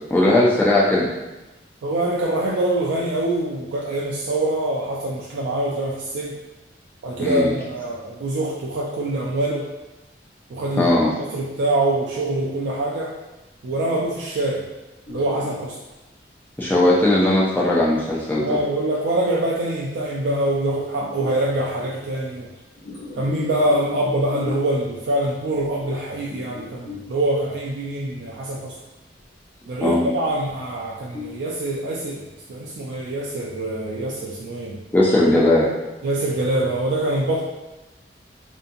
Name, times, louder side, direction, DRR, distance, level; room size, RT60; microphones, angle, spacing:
voice 1, 0.1-1.1 7.2-7.5 10.8-11.1 16.6-18.6 29.8-30.1 34.9-35.7, left 1 dB, 10° left, -6 dB, 0.4 m, -18 dB
voice 2, 1.8-6.4 7.0-9.7 10.5-10.9 11.3-13.1 13.6-14.6 15.1-15.8 18.4-22.5 23.2-28.7 29.7-32.2 32.5-34.8 36.0-37.4, right 1 dB, 85° right, -4 dB, 0.3 m, -24 dB
sound 1, 15.1-15.9 16.6-16.7 19.2-19.3 20.9-21.6 22.6-25.0 25.6-25.8 26.2-27.4 28.9-29.2 29.7-30.0 30.5-30.6 30.9-31.5, left 5 dB, 60° left, 1.0 m, -37 dB
2.6 x 2.4 x 2.6 m, 1.1 s
head